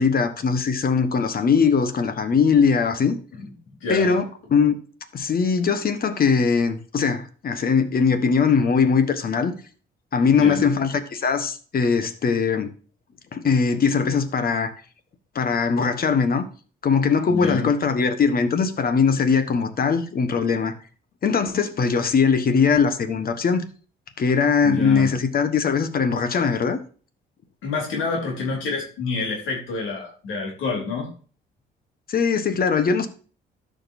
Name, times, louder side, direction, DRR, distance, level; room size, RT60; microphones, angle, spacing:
voice 1, 0.0-3.2 3.9-4.8 5.1-9.5 10.1-12.7 13.3-14.7 15.3-16.4 16.8-20.7 21.2-23.7 24.2-26.8 32.1-33.1, left 5 dB, 50° left, 1.3 m, -21 dB
voice 2, 3.8-4.1 10.3-10.6 17.3-17.7 24.6-25.1 27.6-31.1, left 3 dB, 90° left, 3.0 m, -28 dB
13.0 x 5.2 x 2.7 m
cardioid pair, 90°, 20 cm